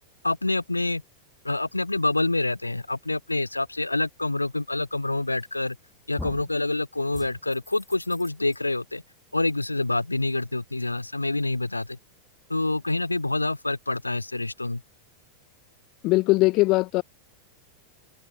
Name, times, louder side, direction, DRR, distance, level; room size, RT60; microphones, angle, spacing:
voice 1, 0.2-1.0 1.4-5.8 6.1-9.0 9.3-12.0 12.5-14.8, left 2 dB, 85° left, 3.9 m, -27 dB
sound 1, 5.4-5.8 6.2-6.6 7.1-8.6, left 2 dB, 5° left, 4.1 m, -42 dB
voice 2, 16.0-17.0, left 22 dB, 40° left, 0.4 m, -20 dB
figure-of-eight pair, 90°, 0 cm